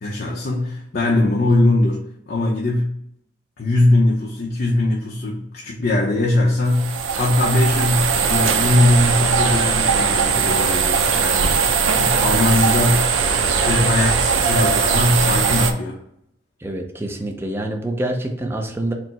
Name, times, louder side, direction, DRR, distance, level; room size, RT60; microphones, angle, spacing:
voice 1, 0.0-3.0 3.6-15.9, left 2 dB, 50° left, -3 dB, 0.6 m, -20 dB
sound 1, 6.7-15.7, right 6 dB, 85° right, 0.5 m, -19 dB
voice 2, 16.6-18.9, right 1 dB, 10° right, 3 dB, 0.4 m, -26 dB
4.4 x 2.0 x 4.0 m, 0.74 s
head